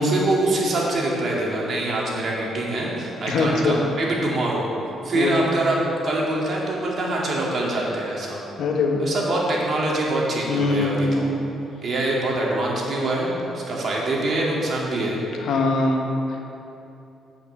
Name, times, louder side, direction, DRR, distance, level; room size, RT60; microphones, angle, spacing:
voice 1, 0.0-4.7 5.0-8.4 9.0-11.3 11.8-15.2, right 2 dB, 50° right, -3 dB, 2.4 m, -24 dB
voice 2, 3.3-3.8 5.1-5.6 8.6-9.1 10.5-11.3 15.4-16.4, left 3 dB, 70° left, 1 dB, 1.2 m, -22 dB
8.6 x 6.0 x 7.2 m, 2.8 s
cardioid pair, 90°, 0 cm